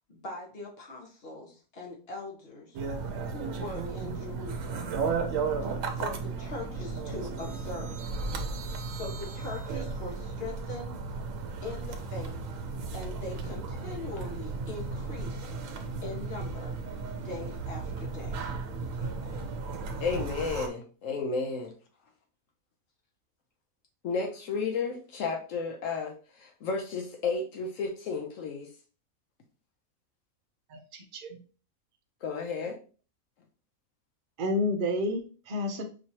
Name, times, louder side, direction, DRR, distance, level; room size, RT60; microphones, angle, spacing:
voice 1, 0.1-2.8 3.2-5.0 5.9-8.0 8.6-11.0 11.6-12.4 12.9-15.5 16.0-16.8 17.2-18.4 19.0-19.5, left 2 dB, 45° left, -1 dB, 1.5 m, -41 dB
sound 1, 2.7-20.7, right 4 dB, 70° right, 1.0 m, -35 dB
voice 2, 20.0-21.7 24.0-28.7 32.2-32.8, left 4 dB, 70° left, 3 dB, 1.0 m, -32 dB
voice 3, 30.7-31.4 34.4-35.8, left 1 dB, 50° right, 4 dB, 0.7 m, -30 dB
5.2 x 3.1 x 2.8 m, 0.37 s
omnidirectional pair, 1.4 m